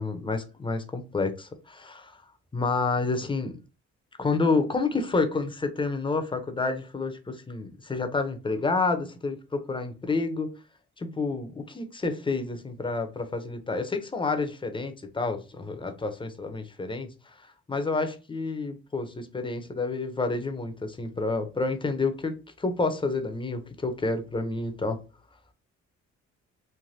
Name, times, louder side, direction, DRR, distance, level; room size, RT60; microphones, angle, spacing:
voice 1, 0.0-2.2 2.5-3.5 4.2-10.5 11.0-17.1 17.7-25.0, left 3 dB, 15° left, 0.5 m, -29 dB
3.3 x 2.2 x 2.6 m
cardioid pair, 90°, 30 cm